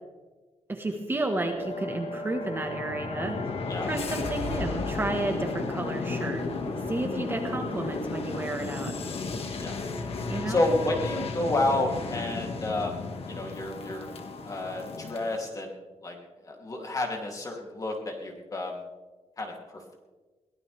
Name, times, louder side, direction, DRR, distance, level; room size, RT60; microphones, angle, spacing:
voice 1, 0.7-3.4 3.8-6.4 6.9-8.9 10.3-10.6, right 2 dB, 20° right, 3 dB, 1.6 m, -31 dB
sound 1, 1.6-15.4, left 3 dB, 55° left, 2.0 m, -34 dB
voice 2, 10.5-13.0 13.3-14.1 14.4-16.2 16.4-18.8 19.4-19.5, left 2 dB, 30° left, 0 dB, 3.2 m, -30 dB
22.5 x 18.0 x 3.5 m, 1.3 s
wide cardioid pair, 155°, 12 cm